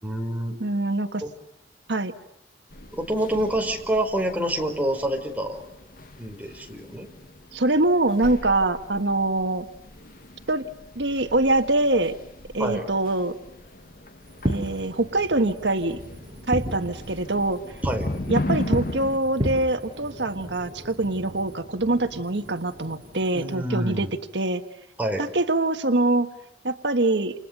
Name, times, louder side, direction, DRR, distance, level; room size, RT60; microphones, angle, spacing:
voice 1, 0.0-0.6 1.2-1.3 2.9-5.6 6.2-7.1 12.6-12.9 17.8-18.1 23.3-24.1 25.0-25.2, right 1 dB, 10° right, 2 dB, 4.9 m, -27 dB
voice 2, 0.6-1.2 1.9-2.1 7.5-9.7 10.5-10.6 10.9-12.2 12.5-13.3 14.5-16.0 16.5-17.6 18.3-24.1 24.3-24.6 25.2-26.3 26.6-27.3, right 2 dB, 75° right, 7 dB, 1.5 m, -24 dB
sound 1, 2.7-19.2, left 1 dB, 50° left, 1.8 m, -38 dB
Fireworks, 14.3-23.6, equal, 25° right, 6.3 m, -34 dB
29.5 x 29.0 x 6.7 m, 0.84 s
head